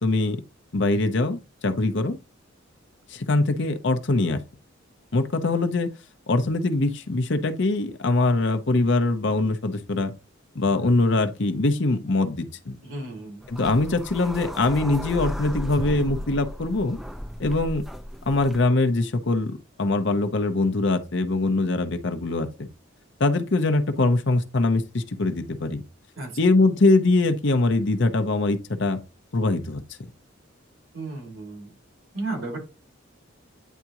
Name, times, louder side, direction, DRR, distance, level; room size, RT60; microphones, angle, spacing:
voice 1, 0.0-0.4 0.7-2.2 3.1-4.4 5.1-5.9 6.3-10.1 10.5-12.8 13.5-17.0 17.4-17.8 18.3-22.7 23.2-25.8 26.4-29.0 29.3-29.8, left 2 dB, 60° left, 0.8 m, -23 dB
voice 2, 12.8-13.5 26.2-26.4 30.9-31.7 32.1-32.6, right 2 dB, 80° right, 2.4 m, -34 dB
sound 1, 13.4-18.6, equal, ahead, 0.4 m, -35 dB
9.2 x 3.6 x 2.9 m
head